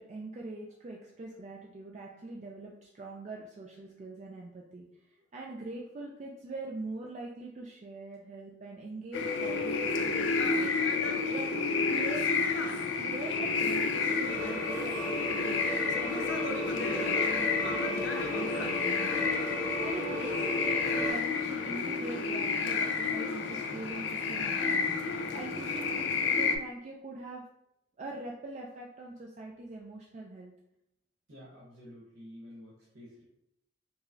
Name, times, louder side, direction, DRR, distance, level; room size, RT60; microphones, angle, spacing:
voice 1, 0.0-12.3 12.6-12.7 13.0-27.4 28.0-30.5, right 2 dB, 35° right, -2 dB, 0.3 m, -43 dB
sound 1, 9.1-26.6, left 4 dB, 60° left, 0.4 m, -30 dB
sound 2, 14.3-21.1, equal, 15° left, 0.6 m, -36 dB
voice 2, 31.3-33.2, equal, 80° right, -6 dB, 1.0 m, -50 dB
4.5 x 2.0 x 2.6 m, 0.81 s
head